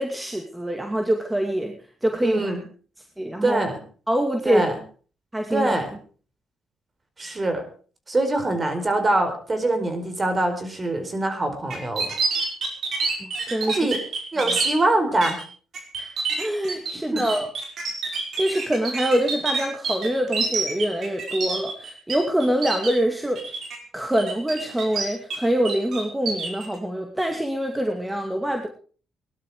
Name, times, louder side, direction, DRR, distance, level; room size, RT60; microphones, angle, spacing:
voice 1, 0.0-2.6 3.2-3.6 4.1-4.7 5.3-5.7 13.2-13.8 14.5-14.6 16.0-16.1 16.4-17.5 18.4-23.4 23.9-28.7, right 1 dB, 10° right, 4 dB, 2.3 m, -25 dB
voice 2, 2.2-2.6 3.4-3.8 4.4-4.7 5.5-5.9 7.2-7.6 8.1-12.1 13.7-14.0 14.3-15.4 17.1-17.2, right 2 dB, 30° right, 8 dB, 4.5 m, -23 dB
sound 1, 11.7-14.7 15.2-15.4 15.7-22.2 22.4-22.9 23.4-23.8 24.2-25.4 25.7-26.7, right 4 dB, 60° right, 5.6 m, -27 dB
19.0 x 12.0 x 4.9 m, 0.40 s
cardioid pair, 90°, 0 cm